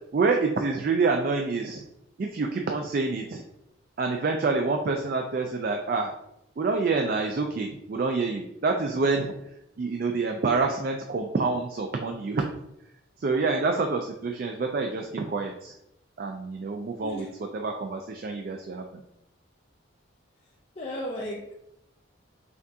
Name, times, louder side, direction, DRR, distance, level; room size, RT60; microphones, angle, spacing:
voice 1, 0.1-1.8 2.2-3.4 4.0-6.1 6.6-9.3 9.8-12.5 13.2-15.7 16.2-17.3 17.5-18.9, right 4 dB, 45° right, 3 dB, 0.3 m, -27 dB
voice 2, 20.8-21.5, equal, 30° left, -3 dB, 0.5 m, -34 dB
5.8 x 2.4 x 2.7 m, 0.81 s
head